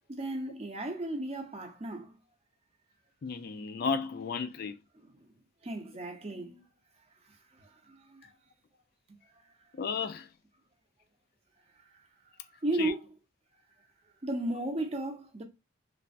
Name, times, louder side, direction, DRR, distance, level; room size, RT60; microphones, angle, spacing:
voice 1, 0.1-2.2 5.0-5.3 5.6-6.6 7.2-8.3 9.1-9.5 11.9-12.0 12.6-13.1 14.2-15.4, right 1 dB, 30° right, 0.6 m, -35 dB
voice 2, 3.2-4.8 9.7-10.3 12.8-12.9, left 5 dB, 50° left, 0.3 m, -33 dB
3.2 x 2.1 x 2.5 m
head